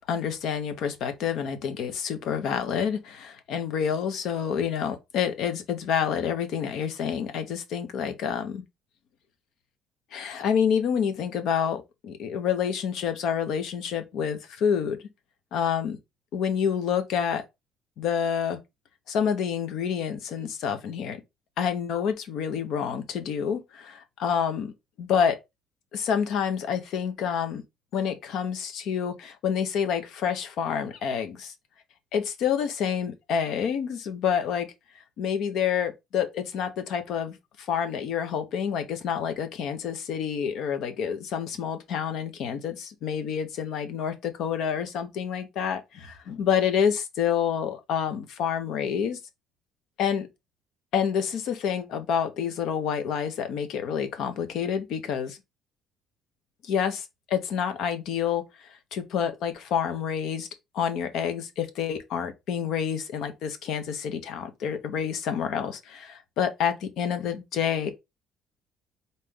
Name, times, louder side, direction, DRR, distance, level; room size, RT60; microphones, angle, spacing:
voice 1, 0.1-8.6 10.1-15.1 15.5-16.0 16.3-17.4 18.0-18.6 19.1-21.2 21.6-24.7 25.0-25.4 25.9-27.6 27.9-31.5 32.1-34.7 35.2-49.2 50.0-50.3 50.9-55.4 56.6-60.5 60.7-67.9, left 7 dB, 60° left, 1.0 m, -28 dB
4.1 x 3.2 x 3.8 m
cardioid pair, 170°, 0 cm